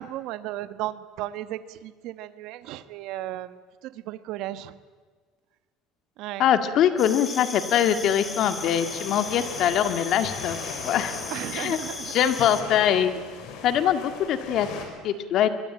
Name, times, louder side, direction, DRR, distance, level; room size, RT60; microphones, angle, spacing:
voice 1, 0.0-4.7 6.2-6.4 11.3-12.2, right 14 dB, 65° right, 13 dB, 1.2 m, -35 dB
voice 2, 6.4-10.6 10.8-11.1 11.5-11.8 12.1-13.2 13.6-14.7 15.0-15.5, left 9 dB, 50° left, 9 dB, 1.9 m, -23 dB
sound 1, 7.0-12.6, left 3 dB, 20° left, 2.9 m, -37 dB
sound 2, 7.9-14.9, left 5 dB, 65° left, 5.9 m, -39 dB
24.5 x 21.5 x 8.9 m, 1.5 s
cardioid pair, 145°, 0 cm